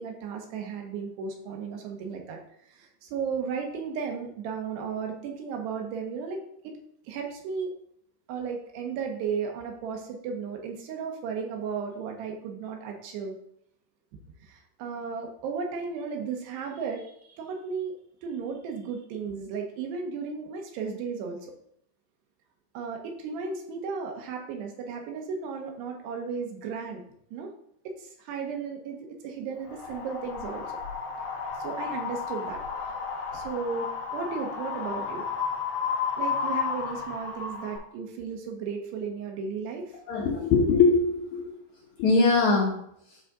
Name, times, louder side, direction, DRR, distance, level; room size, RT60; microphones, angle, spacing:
voice 1, 0.0-2.4 2.7-6.4 6.6-6.8 7.1-7.7 8.3-13.4 14.4-17.9 18.2-21.5 22.8-27.0 27.3-27.5 28.0-30.7 31.6-32.9 33.3-35.3 36.2-39.9, right 5 dB, 85° right, 2 dB, 3.4 m, -35 dB
Wind, 29.7-37.8, left 6 dB, 35° left, 3.9 m, -32 dB
voice 2, 40.1-41.5 42.0-42.8, left 4 dB, 65° left, -3 dB, 2.0 m, -22 dB
12.0 x 4.1 x 3.7 m, 0.72 s
omnidirectional pair, 4.7 m